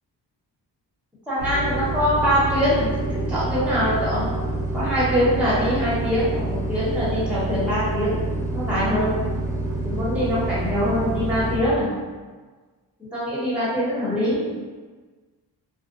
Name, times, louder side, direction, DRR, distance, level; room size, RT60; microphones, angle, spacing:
voice 1, 1.3-2.9 3.3-4.3 4.7-8.1 8.5-9.1 9.8-11.9 13.0-14.5, equal, 5° right, -10 dB, 1.2 m, -23 dB
sound 1, 1.4-11.6, right 2 dB, 30° right, 0.8 m, -27 dB
2.5 x 2.2 x 2.6 m, 1.4 s
cardioid pair, 90°, 41 cm